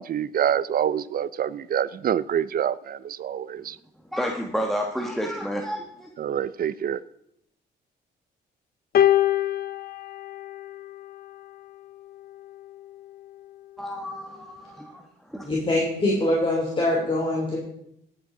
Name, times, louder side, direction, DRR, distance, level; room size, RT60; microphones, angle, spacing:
voice 1, 0.0-3.8 6.2-7.0, right 9 dB, 50° right, 19 dB, 0.5 m, -26 dB
voice 2, 4.1-6.1 13.8-15.0 15.3-15.5, equal, ahead, 1 dB, 1.2 m, -30 dB
sound 1, 8.9-11.4 12.4-12.6, left 12 dB, 50° left, 0.6 m, -24 dB
voice 3, 15.4-17.6, left 1 dB, 25° left, -3 dB, 3.1 m, -23 dB
18.0 x 8.5 x 3.8 m, 0.77 s
cardioid pair, 90°, 20 cm